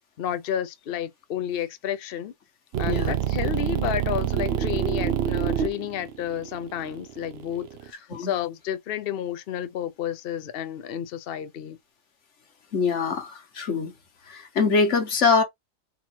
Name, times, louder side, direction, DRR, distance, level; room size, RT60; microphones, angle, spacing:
voice 1, 0.2-2.3 2.8-11.8, left 9 dB, 85° left, 0.5 m, -31 dB
sound 1, 2.7-7.9, right 10 dB, 90° right, 0.5 m, -27 dB
voice 2, 12.7-13.9 14.3-15.4, left 4 dB, 45° left, 1.4 m, -23 dB
3.9 x 2.8 x 4.4 m
omnidirectional pair, 1.8 m